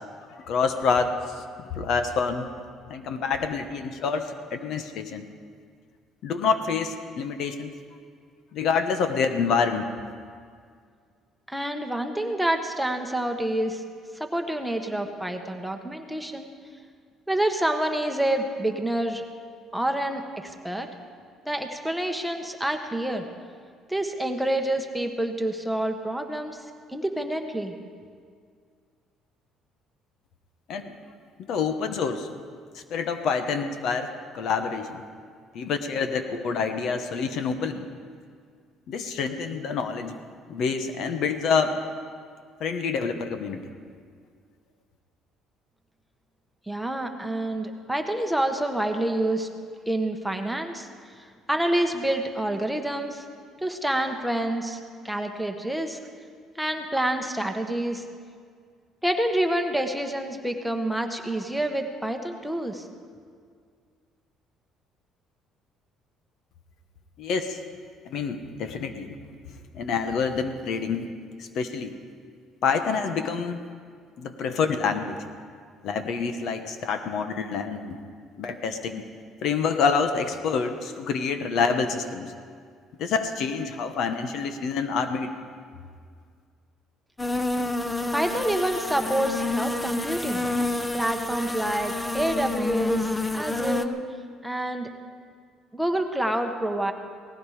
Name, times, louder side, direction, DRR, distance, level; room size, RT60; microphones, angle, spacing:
voice 1, 0.5-1.1 1.4-1.5 1.8-2.5 2.9-5.3 6.2-7.7 8.5-9.9 30.7-30.9 31.5-32.3 32.7-34.1 34.3-35.0 35.5-37.9 38.9-40.2 40.5-41.8 42.6-43.6 67.2-67.6 68.1-69.1 69.7-71.1 71.4-71.9 72.6-73.6 74.2-75.2 75.8-78.0 78.4-79.0 79.4-82.3 83.0-85.3, left 5 dB, 65° left, 8 dB, 1.2 m, -27 dB
voice 2, 11.5-13.8 14.1-16.5 17.3-19.2 19.7-20.9 21.4-23.2 23.9-26.6 26.9-27.7 46.7-49.5 49.9-50.9 51.5-53.2 53.6-54.8 55.0-56.0 56.5-58.0 59.0-62.9 88.1-90.4 90.9-94.0 94.4-94.9 95.7-96.9, right 1 dB, ahead, 4 dB, 1.3 m, -27 dB
sound 1, 87.2-93.9, left 2 dB, 15° left, 0.8 m, -29 dB
18.0 x 15.5 x 5.0 m, 2.1 s
cardioid pair, 105°, 0 cm